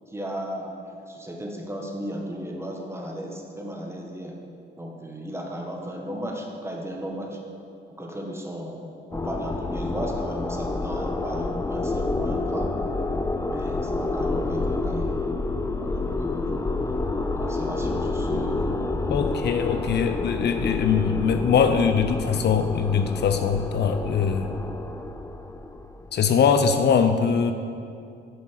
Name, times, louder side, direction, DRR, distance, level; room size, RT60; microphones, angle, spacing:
voice 1, 0.1-0.7 1.1-4.4 4.8-7.4 8.0-8.9 9.1-12.8 13.5-15.2 15.8-16.5 17.3-18.7, equal, 15° right, 1 dB, 1.5 m, -35 dB
sound 1, 9.1-26.4, left 2 dB, 15° left, 0.5 m, -28 dB
voice 2, 19.1-24.5 26.1-27.5, left 6 dB, 60° left, 8 dB, 0.6 m, -22 dB
9.3 x 5.9 x 6.4 m, 2.5 s
cardioid pair, 90°, 20 cm